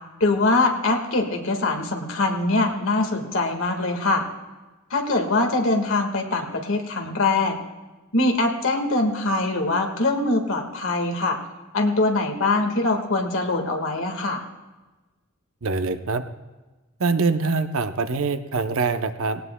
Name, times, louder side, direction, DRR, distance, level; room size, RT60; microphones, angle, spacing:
voice 1, 0.2-4.2 4.9-7.5 8.1-11.4 11.7-14.4, left 2 dB, 65° left, 4 dB, 1.7 m, -23 dB
voice 2, 15.6-16.2 17.0-19.4, right 4 dB, 70° right, 9 dB, 0.7 m, -24 dB
18.5 x 18.0 x 2.2 m, 1.2 s
head